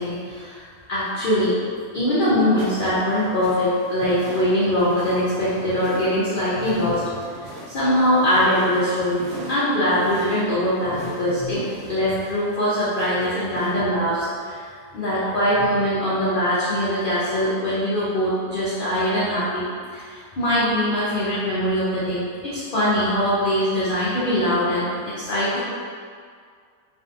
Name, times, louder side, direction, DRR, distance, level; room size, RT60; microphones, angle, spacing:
voice 1, 0.0-1.6 1.9-11.6 11.9-14.7 14.9-19.7 19.9-25.6, equal, 90° left, -10 dB, 0.4 m, -22 dB
sound 1, 2.6-13.7, right 1 dB, 75° right, 0.5 m, -40 dB
2.6 x 2.5 x 2.4 m, 2.1 s
omnidirectional pair, 1.6 m